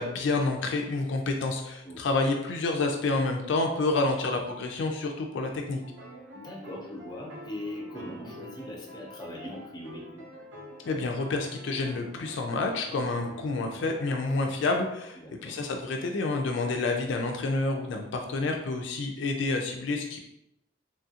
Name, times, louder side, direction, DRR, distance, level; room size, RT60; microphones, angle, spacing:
voice 1, 0.0-5.8 10.9-20.2, left 3 dB, 70° left, 3 dB, 0.3 m, -29 dB
sound 1, 5.8-14.4, equal, 65° right, 0.6 m, -46 dB
voice 2, 6.3-10.2 15.2-15.6, left 1 dB, 20° left, -1 dB, 0.5 m, -40 dB
3.0 x 2.4 x 2.7 m, 0.83 s
head